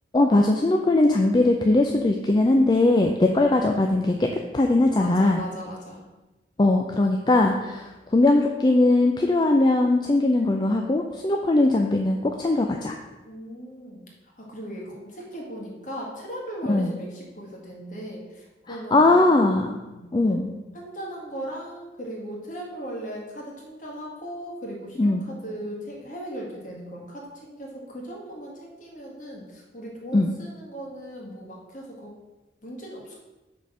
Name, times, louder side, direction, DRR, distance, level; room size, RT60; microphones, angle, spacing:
voice 1, 0.1-4.3 4.5-5.4 6.6-12.9 16.7-17.0 18.7-19.8 20.1-20.5 25.0-25.3 30.1-30.3, left 2 dB, 25° left, 2 dB, 0.4 m, -20 dB
voice 2, 5.0-6.1 13.2-14.1 14.4-19.3 19.9-20.1 20.7-32.1 32.6-33.2, equal, 45° left, -2 dB, 1.7 m, -38 dB
5.2 x 4.3 x 6.1 m, 1.1 s
head